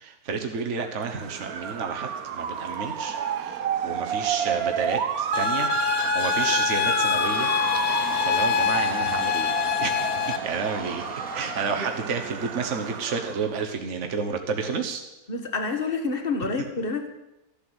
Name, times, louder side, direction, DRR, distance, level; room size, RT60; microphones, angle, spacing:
voice 1, 0.0-7.5 8.2-9.5 9.8-11.0 11.3-15.0, right 5 dB, 50° right, 4 dB, 1.6 m, -31 dB
Motor vehicle (road) / Siren, 0.9-13.6, right 8 dB, 75° right, 1.4 m, -30 dB
sound 1, 5.3-10.4, left 10 dB, 65° left, 1.2 m, -25 dB
sound 2, 7.2-13.3, left 1 dB, 5° left, 1.8 m, -43 dB
voice 2, 15.3-17.1, left 4 dB, 35° left, 5 dB, 1.9 m, -28 dB
15.0 x 12.0 x 8.1 m, 0.96 s
omnidirectional pair, 1.6 m